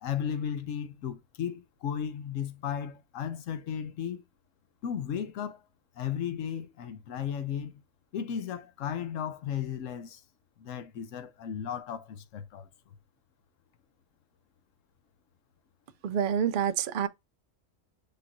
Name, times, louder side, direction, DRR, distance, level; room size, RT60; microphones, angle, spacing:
voice 1, 0.0-4.2 4.8-5.6 6.0-7.8 8.1-10.2 10.6-12.7, left 8 dB, 80° left, 1.1 m, -35 dB
voice 2, 16.0-17.1, right 8 dB, 60° right, 0.5 m, -27 dB
6.7 x 2.6 x 2.9 m
omnidirectional pair, 1.3 m